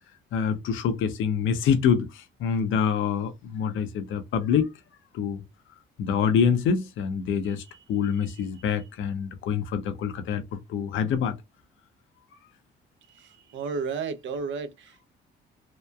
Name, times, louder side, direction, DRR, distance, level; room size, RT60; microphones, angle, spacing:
voice 1, 0.3-4.7 5.1-5.4 6.0-7.6 7.9-10.4 10.7-11.3, left 7 dB, 80° left, 0.6 m, -26 dB
voice 2, 13.1-15.1, right 5 dB, 70° right, 0.6 m, -33 dB
2.8 x 2.2 x 2.2 m
cardioid pair, 90°, 20 cm